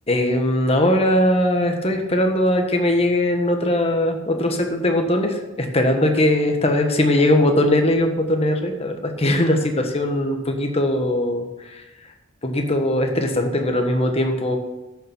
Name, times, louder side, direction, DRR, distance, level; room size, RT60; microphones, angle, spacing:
voice 1, 0.1-11.8 12.4-14.6, left 1 dB, 30° left, 4 dB, 1.3 m, -20 dB
11.0 x 7.1 x 6.0 m, 1.0 s
head